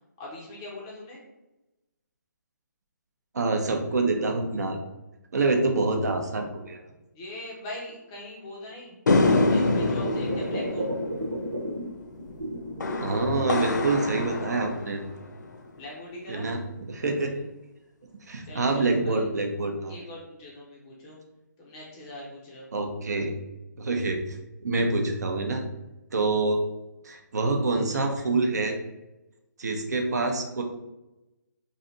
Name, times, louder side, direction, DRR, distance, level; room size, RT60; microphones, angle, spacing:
voice 1, 0.2-1.2 7.1-9.0 9.5-10.9 15.8-16.5 18.4-19.2 19.9-21.2 21.6-22.6, left 1 dB, 15° left, -4 dB, 0.5 m, -41 dB
voice 2, 3.3-4.8 5.3-6.8 13.0-15.0 16.3-16.6 16.9-17.3 18.3-20.0 22.7-23.3 23.8-24.2 24.6-25.6 26.1-26.6 27.0-28.8 29.6-30.6, right 3 dB, 60° right, 3 dB, 0.7 m, -26 dB
sound 1, 9.1-15.6, left 2 dB, 70° left, 0.6 m, -27 dB
sound 2, 9.7-11.9 12.2-13.5 13.9-14.9 15.5-15.6, right 1 dB, 80° right, 1.2 m, -33 dB
3.2 x 2.7 x 3.9 m, 0.98 s
hypercardioid pair, 170°, 10 cm